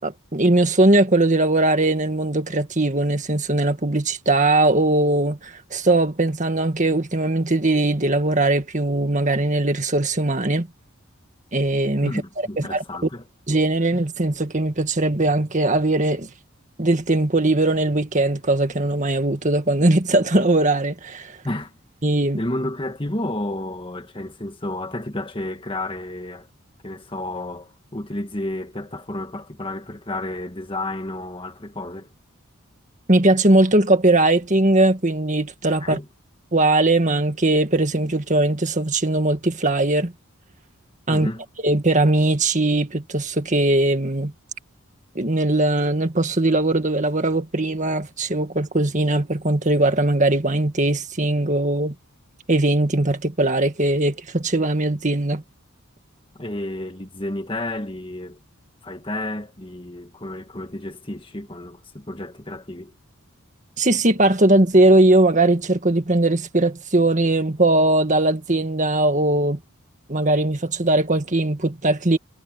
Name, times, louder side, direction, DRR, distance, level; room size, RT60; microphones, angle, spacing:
voice 1, 0.0-10.7 11.5-12.1 12.7-12.8 13.5-16.3 16.8-21.4 22.0-22.4 33.1-36.0 36.5-40.1 41.1-41.3 41.6-44.3 45.2-51.9 52.5-55.4 63.8-69.6 70.1-72.2, right 2 dB, 35° right, 1.9 m, -20 dB
voice 2, 12.0-13.3 21.4-21.7 22.4-26.5 26.8-32.1 35.8-36.1 41.1-41.4 56.4-58.4 58.8-62.9, left 1 dB, 25° left, 1.7 m, -31 dB
head